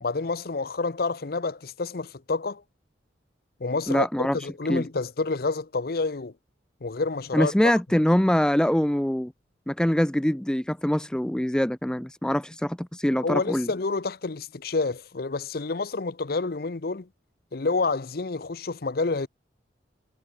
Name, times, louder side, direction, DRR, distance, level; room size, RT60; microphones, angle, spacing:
voice 1, 0.0-2.6 3.6-6.3 6.8-7.7 13.2-17.1 17.5-19.3, left 3 dB, 55° left, 0.7 m, -28 dB
voice 2, 3.9-4.4 4.7-4.8 7.3-9.3 9.7-13.7, equal, 5° left, 0.4 m, -24 dB
head